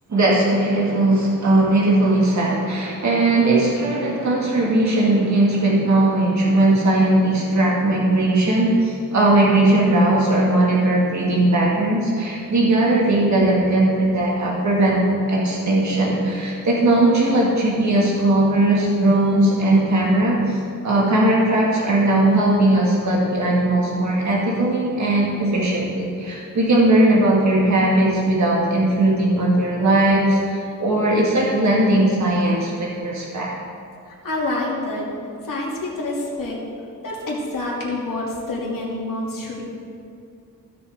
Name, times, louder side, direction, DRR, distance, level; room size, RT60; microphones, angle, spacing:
voice 1, 0.1-15.0 15.3-33.5, right 1 dB, 55° right, -4 dB, 2.0 m, -18 dB
voice 2, 34.0-35.1 35.4-36.6 37.0-39.6, left 2 dB, 75° left, -5 dB, 2.7 m, -27 dB
16.0 x 6.9 x 3.6 m, 2.5 s
wide cardioid pair, 160°, 34 cm